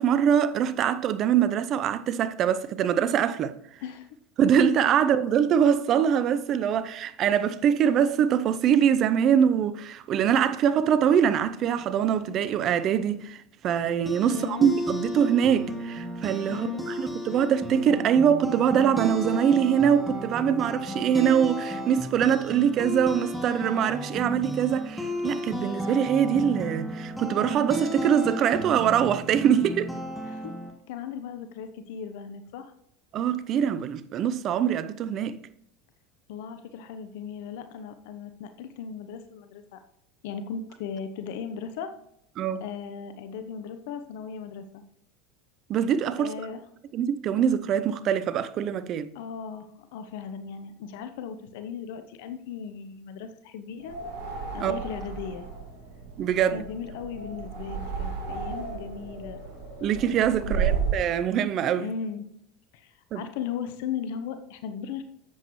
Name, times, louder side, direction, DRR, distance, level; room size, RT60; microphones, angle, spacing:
voice 1, 0.0-3.5 4.4-13.4 13.6-29.9 33.1-35.4 42.4-42.7 45.7-46.3 46.9-49.1 54.6-54.8 56.2-56.6 59.8-61.9 63.1-63.2, right 8 dB, 45° right, 0.6 m, -23 dB
sound 1, 13.8-30.7, equal, ahead, 2.2 m, -34 dB
voice 2, 14.2-14.7 16.5-16.8 30.2-30.5 30.9-32.7 36.3-39.8 40.2-41.9 42.6-44.8 46.2-46.6 49.1-54.0 54.5-55.5 56.5-59.4 60.5-60.7 61.8-62.2 62.7-65.0, left 7 dB, 70° left, 0.8 m, -37 dB
sound 2, 53.8-61.1, right 6 dB, 70° right, 3.4 m, -33 dB
11.5 x 7.9 x 3.1 m
hypercardioid pair, 80°, 0 cm